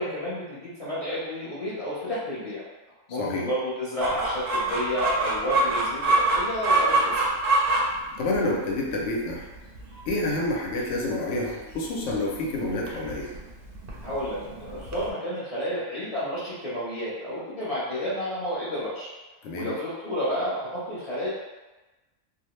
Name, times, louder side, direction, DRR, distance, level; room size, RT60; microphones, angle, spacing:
voice 1, 0.0-2.6 3.1-7.1 14.0-19.1 19.5-20.6 20.9-21.3, equal, 35° left, -10 dB, 0.8 m, -30 dB
Chicken rooster, 4.0-15.1, right 2 dB, 65° right, 0.6 m, -27 dB
voice 2, 8.2-9.4 10.1-13.3 19.4-19.7, left 2 dB, 75° left, -2 dB, 0.9 m, -28 dB
2.4 x 2.0 x 3.0 m, 1.2 s
omnidirectional pair, 1.3 m